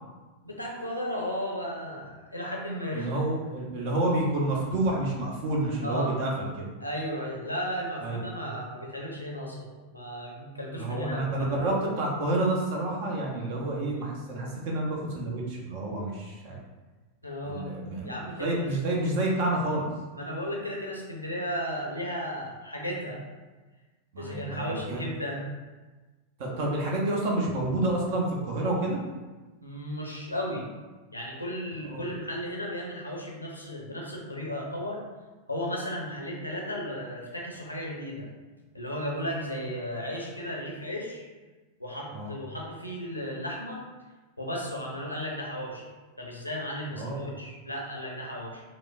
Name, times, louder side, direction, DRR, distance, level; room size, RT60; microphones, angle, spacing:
voice 1, 0.4-3.1 5.8-6.1 6.8-11.5 17.2-17.7 18.0-18.7 20.1-23.2 24.2-25.4 29.6-30.6 31.1-35.0 35.5-38.3 38.7-41.2 41.8-43.8 44.4-45.9 46.2-48.6, equal, 90° left, -2 dB, 0.7 m, -34 dB
voice 2, 2.9-6.3 8.0-8.2 10.8-16.6 17.4-18.1 18.4-19.9 24.1-25.0 26.4-29.0 31.8-32.0 42.1-42.3 46.9-47.3, right 2 dB, 50° right, -2 dB, 0.8 m, -29 dB
4.8 x 2.0 x 2.5 m, 1.2 s
figure-of-eight pair, 90°, 0 cm